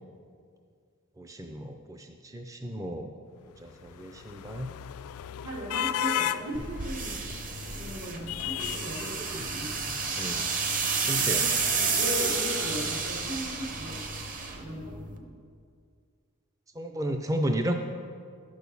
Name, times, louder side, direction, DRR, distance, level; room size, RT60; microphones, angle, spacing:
voice 1, 1.2-3.1 3.6-4.7 9.4-9.5 10.2-10.5 11.1-11.5 16.8-17.7, equal, 15° right, 4 dB, 0.4 m, -33 dB
sound 1, 3.6-13.9, left 11 dB, 75° left, 0.3 m, -37 dB
voice 2, 5.4-7.2 7.6-9.9 10.8-14.1 14.4-15.0, equal, 75° right, -2 dB, 2.6 m, -38 dB
sound 2, 6.5-15.2, right 5 dB, 40° right, 0.9 m, -31 dB
sound 3, 6.8-15.4, right 1 dB, 60° right, 1.4 m, -52 dB
10.5 x 6.3 x 7.0 m, 2.2 s
head